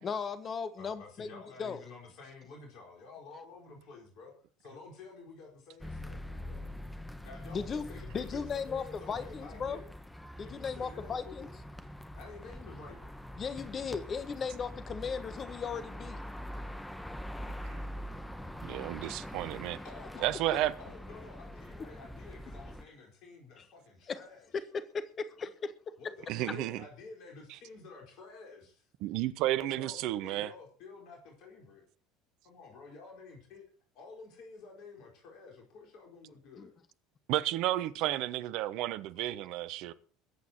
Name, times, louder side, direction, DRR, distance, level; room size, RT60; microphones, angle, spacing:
voice 1, 0.0-1.8 7.5-7.8 8.1-9.8 10.4-11.5 13.4-16.2 23.6-23.7 24.1-24.2 24.5-25.7 36.6-36.7, left 6 dB, 35° left, 1.3 m, -37 dB
voice 2, 0.8-4.3 4.6-6.7 7.2-9.9 10.4-11.5 12.1-13.2 19.3-19.4 19.8-24.6 26.0-28.9 29.6-31.8 32.4-33.6 33.9-36.7 38.0-38.2, left 4 dB, 50° left, 4.6 m, -51 dB
sound 1, 5.8-22.8, equal, 5° left, 1.5 m, -44 dB
voice 3, 18.6-19.8 20.2-20.7 26.3-26.8 29.0-30.5 37.3-39.9, right 15 dB, 55° right, 0.9 m, -32 dB
21.5 x 8.5 x 4.5 m
figure-of-eight pair, 65°, 0 cm